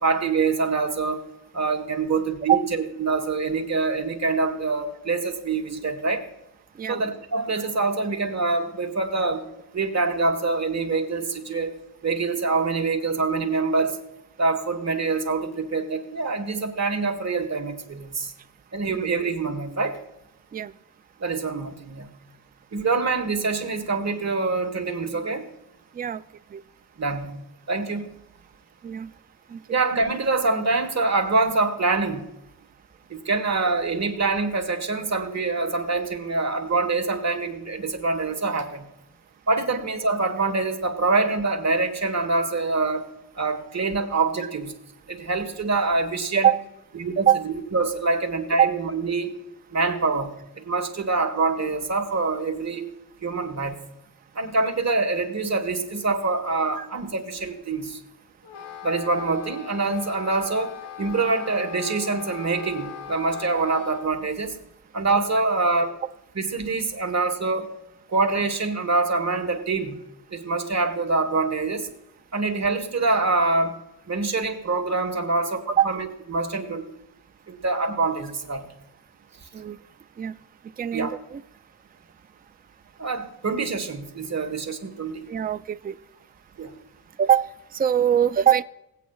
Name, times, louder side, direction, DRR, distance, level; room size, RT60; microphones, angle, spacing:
voice 1, 0.0-1.2 1.5-6.2 6.9-9.4 9.7-11.7 12.0-14.0 14.4-18.3 18.7-20.0 21.2-22.1 22.7-25.4 27.0-27.4 27.7-28.1 29.7-32.2 33.1-38.9 39.5-43.0 43.3-44.7 45.1-46.5 46.9-49.3 49.7-52.8 53.2-53.8 54.3-58.0 58.8-60.7 61.0-64.6 64.9-65.9 66.3-67.7 68.1-70.0 70.3-71.9 72.3-73.7 74.1-76.9 77.5-78.6 80.9-81.1 83.0-85.3 86.6-86.7, right 3 dB, 40° right, 5 dB, 1.4 m, -25 dB
Wind instrument woodwind instrument, 58.4-64.1, left 9 dB, 75° left, 0.9 m, -39 dB
voice 2, 80.8-81.4 85.3-86.0 87.2-88.6, right 9 dB, 25° right, 11 dB, 0.4 m, -22 dB
18.0 x 8.3 x 2.3 m, 0.89 s
cardioid pair, 90°, 41 cm